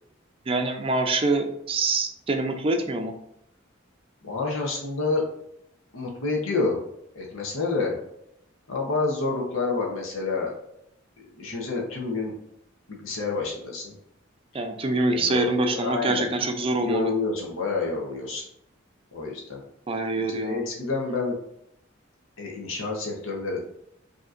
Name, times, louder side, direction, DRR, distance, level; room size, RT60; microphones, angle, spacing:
voice 1, 0.5-3.1 14.5-17.1 19.9-20.6, right 2 dB, 25° right, 5 dB, 0.4 m, -25 dB
voice 2, 4.2-5.2 5.9-6.8 7.1-8.0 8.7-10.5 11.2-12.3 12.9-13.9 15.1-16.3 16.8-18.4 19.1-19.6 20.2-21.4 22.4-23.6, left 3 dB, 85° left, -1 dB, 0.9 m, -28 dB
5.1 x 2.9 x 2.5 m, 0.75 s
head